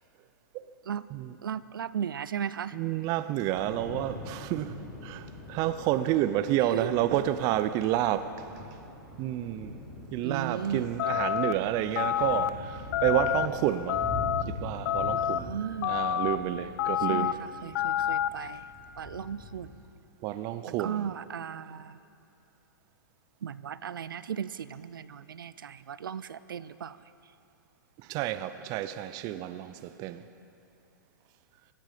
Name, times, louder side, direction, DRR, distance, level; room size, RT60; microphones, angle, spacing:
voice 1, 1.4-2.8 6.6-6.9 10.2-10.9 15.2-16.0 17.1-18.7 19.0-19.7 20.8-22.0 23.4-27.0, right 8 dB, 85° right, 0.5 m, -36 dB
voice 2, 2.7-4.7 5.0-8.3 9.2-9.7 10.1-14.1 14.5-15.5 15.9-17.3 20.2-21.1 28.1-30.2, right 13 dB, 35° right, 0.5 m, -29 dB
Thunder / Rain, 3.5-19.7, left 1 dB, ahead, 4.2 m, -43 dB
sound 1, 11.0-11.5 12.0-12.5 12.9-13.5 13.9-14.4 14.9-15.4 15.8-16.4 16.8-17.3 17.8-18.3, left 11 dB, 50° left, 0.5 m, -28 dB
17.0 x 13.5 x 5.1 m
hypercardioid pair, 130°, 11 cm